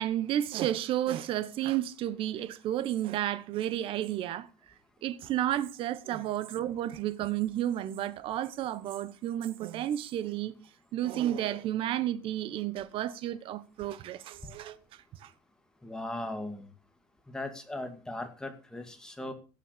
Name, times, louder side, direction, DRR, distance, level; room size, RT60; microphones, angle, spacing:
voice 1, 0.0-4.5 5.0-10.5 10.9-15.3, right 12 dB, 50° right, 1.1 m, -32 dB
voice 2, 15.8-16.7 17.3-19.3, left 1 dB, 5° left, 2.3 m, -38 dB
17.0 x 7.5 x 6.7 m
cardioid pair, 165°, 12 cm